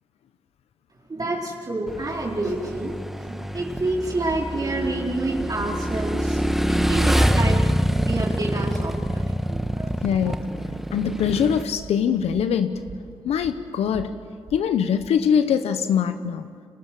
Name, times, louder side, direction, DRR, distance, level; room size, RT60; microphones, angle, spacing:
voice 1, 1.1-2.9 3.2-6.4 6.7-9.2 9.5-10.4, right 2 dB, 40° right, -2 dB, 4.1 m, -28 dB
Motorcycle / Engine, 1.9-11.6, equal, 5° right, 1.4 m, -25 dB
sound 1, 3.7-15.1, right 5 dB, 70° right, 3.8 m, -44 dB
voice 2, 10.0-10.4 10.9-12.8 13.2-14.1 14.5-16.4, left 7 dB, 85° left, 10 dB, 1.0 m, -22 dB
29.5 x 23.5 x 7.6 m, 2.1 s
cardioid pair, 60°, 10 cm